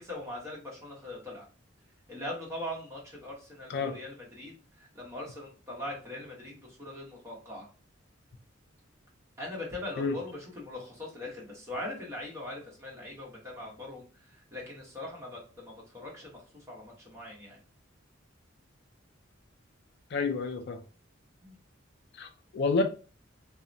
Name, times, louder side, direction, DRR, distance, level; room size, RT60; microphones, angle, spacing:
voice 1, 0.0-1.5 2.1-7.7 9.4-17.6 21.4-21.6, left 1 dB, 15° right, 0.9 m, -41 dB
voice 2, 20.1-20.8 22.1-22.8, left 4 dB, 55° left, 0.4 m, -29 dB
2.8 x 2.0 x 2.5 m
head